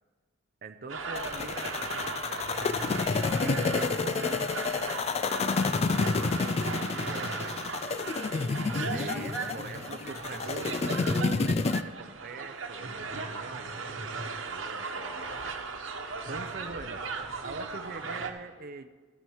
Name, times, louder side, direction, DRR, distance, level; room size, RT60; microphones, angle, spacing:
voice 1, 0.6-2.8 3.4-15.7 16.3-17.2 17.4-18.9, right 4 dB, 50° right, 8 dB, 0.6 m, -44 dB
sound 1, 0.9-18.3, right 4 dB, 85° right, 1.2 m, -37 dB
sound 2, 1.2-11.8, left 4 dB, 30° left, 0.3 m, -30 dB
12.0 x 7.3 x 7.1 m, 1.4 s
head